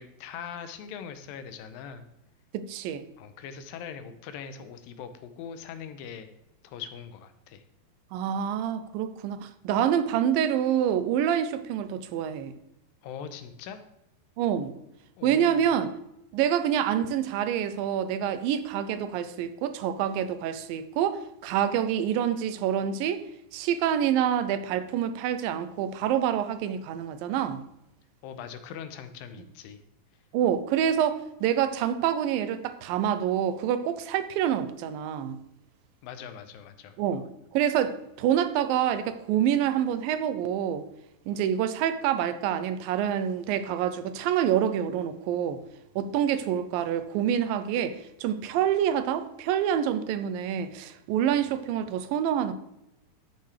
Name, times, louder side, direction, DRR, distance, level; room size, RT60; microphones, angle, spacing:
voice 1, 0.0-2.0 3.2-6.3 6.6-7.6 13.0-13.8 15.2-15.6 28.2-29.8 36.0-36.9, left 7 dB, 80° left, 2.5 m, -41 dB
voice 2, 2.5-3.0 8.1-12.5 14.4-14.7 15.2-15.9 16.3-23.2 23.5-27.6 30.3-35.4 37.0-37.2 37.5-40.9 41.3-45.6 46.0-52.5, right 9 dB, 85° right, 2.4 m, -27 dB
13.0 x 6.8 x 3.3 m
omnidirectional pair, 4.0 m